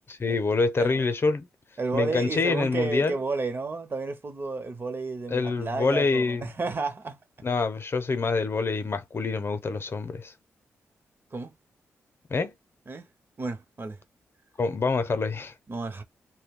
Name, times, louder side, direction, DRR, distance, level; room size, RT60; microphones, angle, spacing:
voice 1, 0.1-1.5 1.9-3.2 5.3-6.4 7.4-10.3 12.3-12.5 14.6-15.5, left 4 dB, 45° left, 0.7 m, -26 dB
voice 2, 1.8-7.2 11.3-11.5 12.9-13.1 13.4-14.0 15.7-16.0, right 3 dB, 40° right, 0.9 m, -32 dB
2.3 x 2.2 x 3.6 m
supercardioid pair, 50°, 6 cm